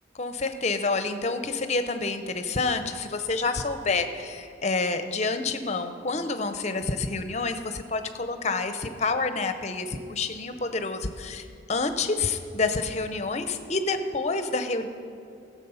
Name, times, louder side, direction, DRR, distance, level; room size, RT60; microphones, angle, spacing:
voice 1, 0.2-14.9, left 3 dB, 35° left, 8 dB, 0.6 m, -28 dB
14.5 x 7.4 x 5.6 m, 2.6 s
head